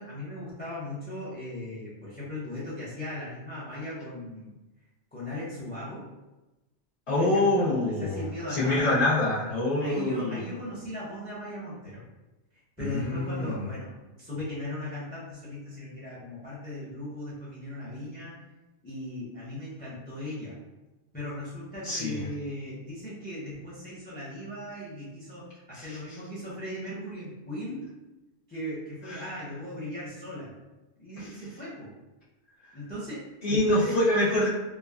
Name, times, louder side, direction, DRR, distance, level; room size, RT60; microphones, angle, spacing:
voice 1, 0.0-4.6 5.1-6.0 7.1-9.1 9.8-12.0 12.8-18.3 18.8-20.6 21.1-27.9 28.5-30.5 31.0-31.9 32.7-34.0, left 1 dB, 10° left, -8 dB, 0.5 m, -38 dB
voice 2, 7.1-8.2 8.5-10.4 12.8-13.7 21.8-22.2 25.7-26.0 29.1-29.2 31.2-31.3 33.4-34.5, left 1 dB, 60° left, -11 dB, 1.2 m, -26 dB
3.3 x 2.2 x 2.3 m, 1.1 s
omnidirectional pair, 1.3 m